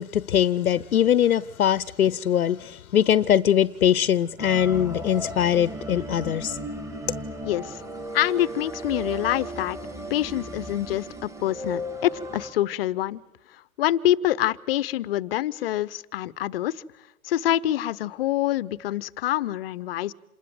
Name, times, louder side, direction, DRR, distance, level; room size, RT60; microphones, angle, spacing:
voice 1, 0.0-6.6, left 10 dB, 85° left, 0.8 m, -22 dB
sound 1, 4.4-12.5, right 1 dB, 5° right, 2.8 m, -35 dB
voice 2, 7.4-7.8 8.1-9.8 10.1-13.2 13.5-16.8 17.2-20.1, left 13 dB, 45° left, 0.8 m, -26 dB
27.5 x 20.5 x 7.8 m
hypercardioid pair, 135°, 42 cm